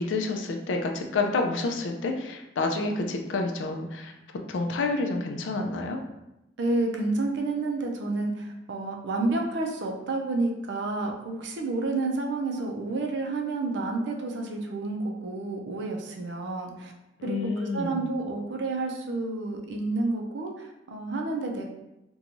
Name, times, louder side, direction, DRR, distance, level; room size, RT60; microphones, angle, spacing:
voice 1, 0.0-4.1 4.5-6.0 17.2-18.0, left 3 dB, 80° left, 4 dB, 0.4 m, -29 dB
voice 2, 6.6-16.9 17.2-21.7, right 2 dB, 70° right, 2 dB, 0.4 m, -30 dB
2.9 x 2.2 x 2.5 m, 0.92 s
head